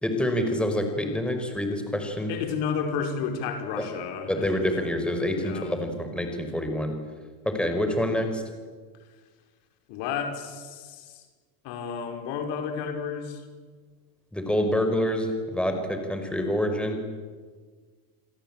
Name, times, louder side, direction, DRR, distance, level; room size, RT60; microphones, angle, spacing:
voice 1, 0.0-2.3 3.8-3.9 4.3-6.9 7.4-8.4 14.3-17.0, left 1 dB, ahead, 5 dB, 5.1 m, -27 dB
voice 2, 2.3-4.9 5.4-5.8 9.9-11.3 11.6-13.4, left 6 dB, 60° left, 5 dB, 5.2 m, -32 dB
28.5 x 21.0 x 9.0 m, 1.5 s
supercardioid pair, 110°, 45 cm